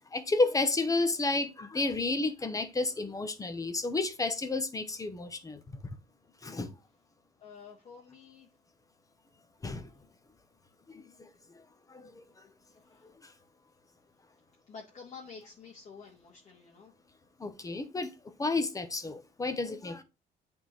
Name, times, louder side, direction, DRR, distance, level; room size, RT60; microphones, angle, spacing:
voice 1, 0.0-5.6 6.4-6.7 9.6-9.9 10.9-11.3 11.9-12.5 13.0-13.3 17.4-18.1 18.4-20.0, left 3 dB, 20° left, 0.8 m, -31 dB
voice 2, 7.4-8.5 12.9-13.1 14.7-16.9, left 5 dB, 40° left, 1.6 m, -49 dB
8.5 x 3.6 x 3.1 m
cardioid pair, 110°, 17 cm